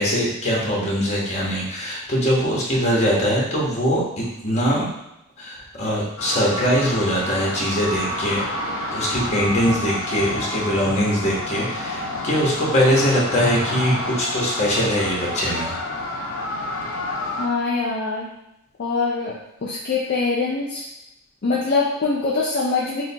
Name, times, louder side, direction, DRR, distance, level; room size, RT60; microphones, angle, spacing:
voice 1, 0.0-4.9 5.4-8.5 8.9-15.8, equal, 35° left, -4 dB, 1.1 m, -22 dB
sound 1, 6.2-17.5, left 1 dB, 70° left, 0.8 m, -29 dB
voice 2, 17.4-18.3 18.8-19.3 19.6-20.9 21.4-23.0, left 4 dB, 50° left, -4 dB, 0.5 m, -23 dB
6.1 x 2.2 x 2.8 m, 0.85 s
head